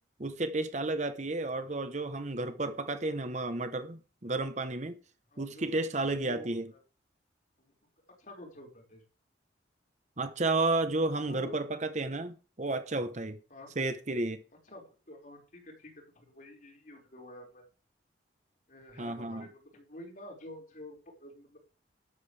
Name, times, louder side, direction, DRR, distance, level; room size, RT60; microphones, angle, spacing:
voice 1, 0.2-5.0 5.4-6.7 10.2-13.4 13.8-14.4 19.0-19.5, right 2 dB, 40° right, 1.0 m, -32 dB
voice 2, 5.3-6.8 7.6-7.7 8.2-9.0 11.3-11.7 13.5-13.7 14.7-17.6 18.7-21.6, left 1 dB, 45° left, 5.3 m, -50 dB
12.5 x 12.5 x 3.4 m
head